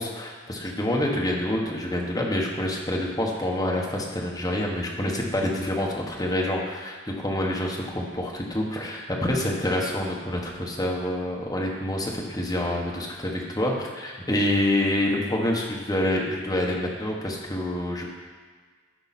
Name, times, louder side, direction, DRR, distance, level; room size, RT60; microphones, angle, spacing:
voice 1, 0.0-18.0, left 1 dB, 20° left, -2 dB, 1.1 m, -27 dB
13.0 x 4.8 x 4.2 m, 1.5 s
head